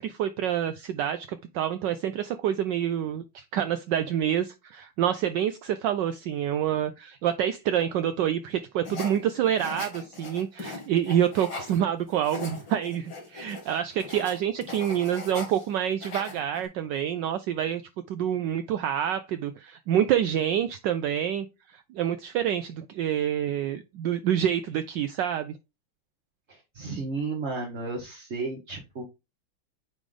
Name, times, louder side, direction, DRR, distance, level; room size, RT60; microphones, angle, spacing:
voice 1, 0.0-17.8 18.1-25.6, right 10 dB, 75° right, 1.1 m, -27 dB
sound 1, 8.9-11.8 12.1-15.7 15.9-16.7, left 3 dB, 60° left, 3.0 m, -40 dB
voice 2, 26.5-29.0, right 3 dB, 40° right, 1.3 m, -33 dB
8.9 x 3.3 x 3.7 m
omnidirectional pair, 2.3 m